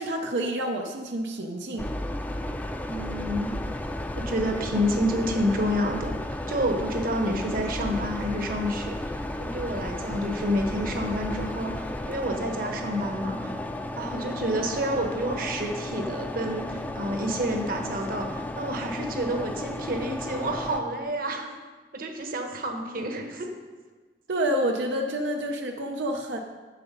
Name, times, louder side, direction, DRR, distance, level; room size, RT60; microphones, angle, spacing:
voice 1, 0.0-1.9 24.3-26.4, right 1 dB, 85° right, 3 dB, 0.6 m, -28 dB
sound 1, 1.8-20.8, left 1 dB, 10° left, 0.4 m, -34 dB
voice 2, 2.8-3.5 4.1-13.5 14.0-21.5 21.9-23.5, equal, 55° right, 3 dB, 1.0 m, -29 dB
7.9 x 6.8 x 5.2 m, 1.4 s
head